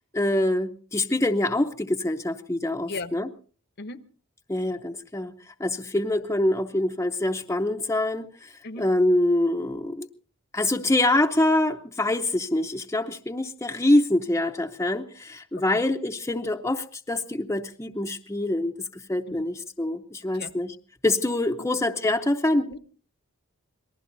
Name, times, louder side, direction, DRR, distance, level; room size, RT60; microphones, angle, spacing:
voice 1, 0.1-3.3 4.5-5.3 5.6-8.3 8.8-10.1 10.5-20.7 21.0-22.7, left 1 dB, 15° left, 5 dB, 0.7 m, -25 dB
voice 2, 2.9-3.1 3.8-4.0 8.6-8.9 15.7-15.8 19.3-19.5 20.3-20.5 21.6-21.7 22.7-22.8, left 3 dB, 50° left, 12 dB, 0.9 m, -36 dB
26.5 x 19.5 x 2.6 m, 0.41 s
head